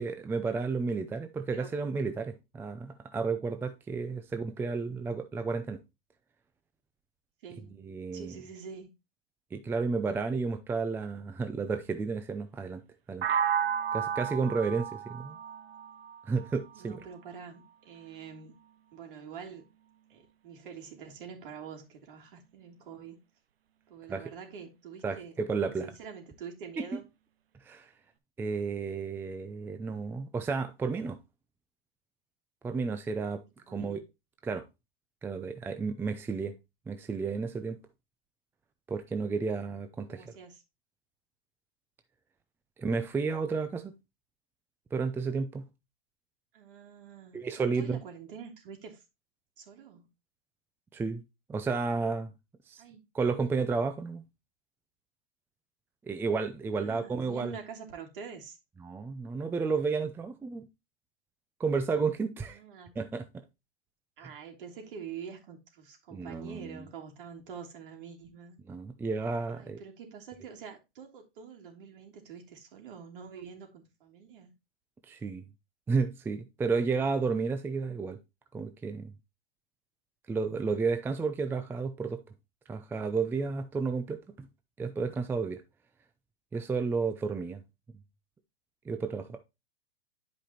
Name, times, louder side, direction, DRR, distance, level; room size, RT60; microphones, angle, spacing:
voice 1, 0.0-5.8 7.8-8.4 9.5-12.8 13.1-13.3 13.9-15.4 16.3-17.0 24.1-24.2 25.0-25.9 26.8-27.0 27.6-27.9 28.4-31.2 32.6-33.4 33.7-34.0 34.4-34.6 35.2-36.5 36.9-37.8 38.9-40.3 42.8-43.9 44.9-45.6 47.3-48.0 50.9-51.2 51.5-52.3 52.7-52.8 53.1-54.2 56.0-57.5 58.8-60.7 61.6-62.6 63.0-63.4 64.2-64.3 66.1-66.7 68.7-69.8 75.1-75.4 75.9-78.2 78.5-79.1 80.3-82.2 82.7-84.5 84.8-85.6 86.5-87.6 88.9-89.4, right 4 dB, 10° right, 0.5 m, -32 dB
voice 2, 7.4-7.7 8.1-8.9 16.7-18.6 18.9-19.6 20.1-23.2 23.9-25.3 25.8-27.0 33.7-34.0 40.1-40.6 46.5-49.0 49.6-50.1 52.8-53.0 53.4-53.5 56.7-58.6 62.4-62.9 64.2-68.6 69.5-74.5, right 6 dB, 65° right, 3.0 m, -46 dB
sound 1, 13.2-17.1, right 8 dB, 85° right, 0.8 m, -32 dB
11.0 x 5.2 x 2.9 m
hypercardioid pair, 125°, 29 cm